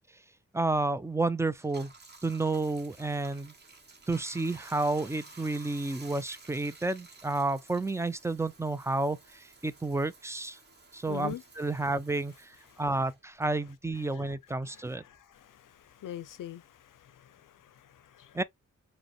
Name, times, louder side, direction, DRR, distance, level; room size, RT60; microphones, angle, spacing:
voice 1, 0.5-1.9 2.2-3.5 4.1-10.6 10.9-12.5 12.8-15.0 18.3-18.4, right 2 dB, 10° right, 0.4 m, -31 dB
Bathtub (filling or washing), 1.5-14.4 14.7-16.5, right 3 dB, 30° right, 1.2 m, -54 dB
voice 2, 11.1-11.4 12.7-12.8 14.1-14.3 14.7-18.4, left 11 dB, 75° left, 0.5 m, -44 dB
4.9 x 2.2 x 2.9 m
wide cardioid pair, 95°, 32 cm